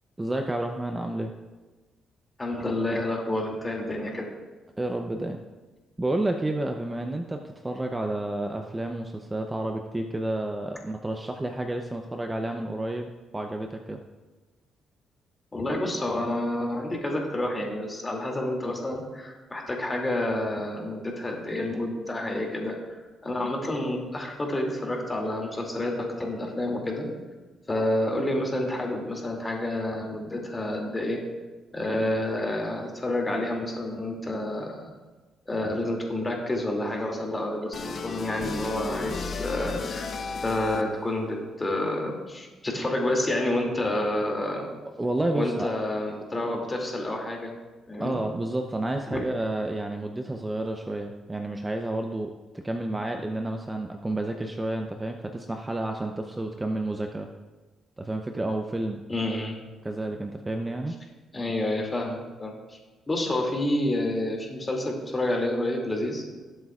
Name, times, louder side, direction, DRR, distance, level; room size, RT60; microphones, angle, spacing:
voice 1, 0.2-1.3 4.8-5.4 6.0-14.0 45.0-45.7 48.0-57.3 58.0-59.0 59.8-61.0, right 1 dB, 15° right, 4 dB, 0.7 m, -30 dB
voice 2, 2.4-4.3 15.5-27.1 27.7-31.2 31.7-34.8 35.5-40.1 40.4-44.7 45.3-47.5 47.9-48.2 49.1-49.2 59.1-59.6 61.3-62.8 63.1-66.2, left 1 dB, 20° left, 0 dB, 2.6 m, -29 dB
sound 1, 37.7-41.1, left 4 dB, 55° left, 0.9 m, -33 dB
20.0 x 7.8 x 2.5 m, 1.2 s
cardioid pair, 90°, 0 cm